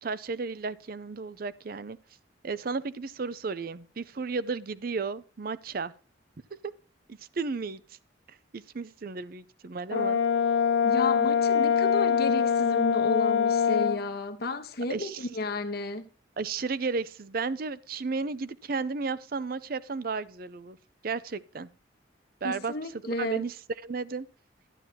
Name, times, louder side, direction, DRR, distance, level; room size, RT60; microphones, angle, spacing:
voice 1, 0.0-2.0 2.4-5.9 6.6-6.7 7.1-7.8 8.5-10.2 14.9-15.3 16.4-20.8 21.0-21.7 22.4-22.7 23.0-23.6 23.8-24.3, right 4 dB, 50° right, 0.5 m, -33 dB
Brass instrument, 9.9-14.0, left 7 dB, 70° left, 0.4 m, -24 dB
voice 2, 10.8-16.0 22.4-23.4, left 2 dB, 55° left, 1.1 m, -32 dB
11.5 x 10.5 x 2.8 m
head